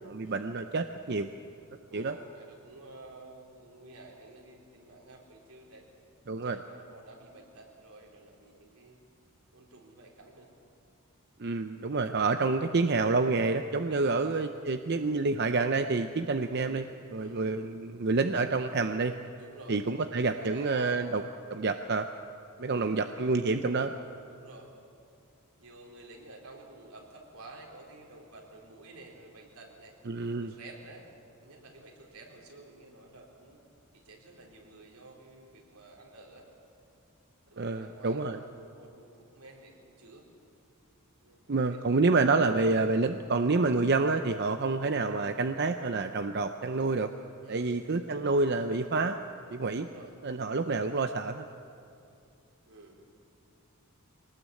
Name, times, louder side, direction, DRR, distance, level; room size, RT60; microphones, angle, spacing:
voice 1, 0.1-1.3 1.9-2.1 6.3-6.6 11.4-19.1 19.7-21.2 21.5-22.1 22.6-23.9 30.1-30.5 37.6-38.4 41.5-47.1 47.5-49.2 49.5-49.9 50.2-51.4, right 3 dB, 50° right, 8 dB, 0.6 m, -28 dB
voice 2, 1.9-5.9 6.3-9.0 9.5-10.5 14.0-14.4 17.1-17.5 19.4-21.0 22.5-23.3 24.3-24.7 25.6-29.9 30.4-31.0 31.4-33.6 33.9-36.4 37.5-40.3 41.2-41.8 47.4-47.8 49.8-50.2 52.7-53.0, right 2 dB, 80° right, 0 dB, 4.1 m, -52 dB
23.0 x 19.0 x 8.4 m, 2.5 s
head